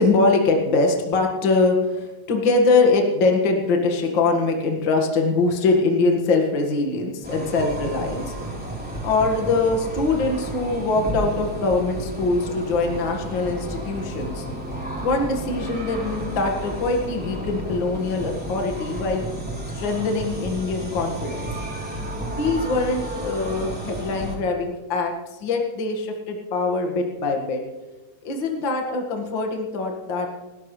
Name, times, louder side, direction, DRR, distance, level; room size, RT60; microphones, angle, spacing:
voice 1, 0.0-8.3 9.0-14.5 15.0-19.2 19.7-21.5 22.3-27.6 28.2-30.3, left 3 dB, 85° left, 2 dB, 1.0 m, -23 dB
sound 1, 7.2-24.4, right 1 dB, 5° right, 2.5 m, -32 dB
28.0 x 13.0 x 3.3 m, 1.2 s
omnidirectional pair, 5.4 m